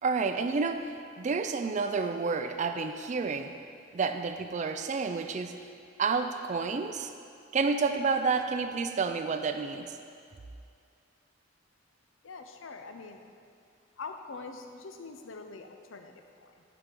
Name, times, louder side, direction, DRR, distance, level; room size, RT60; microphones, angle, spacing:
voice 1, 0.0-0.9 1.2-3.5 3.9-5.5 6.0-7.1 7.5-9.9, right 4 dB, 40° right, 8 dB, 0.4 m, -29 dB
voice 2, 12.2-13.3 14.0-16.6, left 4 dB, 85° left, 6 dB, 0.7 m, -44 dB
11.0 x 5.3 x 4.5 m, 2.4 s
head